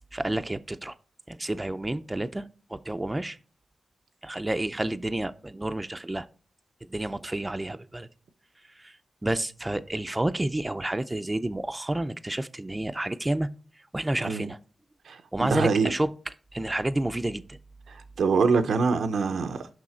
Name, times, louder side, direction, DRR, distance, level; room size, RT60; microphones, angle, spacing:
voice 1, 0.1-0.9 1.3-3.4 4.2-6.3 6.9-8.1 8.8-8.9 9.2-13.5 13.9-14.6 15.3-16.1 16.5-17.6, right 1 dB, 20° right, 0.4 m, -30 dB
voice 2, 15.1-15.9 17.9-19.7, right 5 dB, 90° right, 0.7 m, -25 dB
6.1 x 5.7 x 4.3 m
cardioid pair, 85°, 0 cm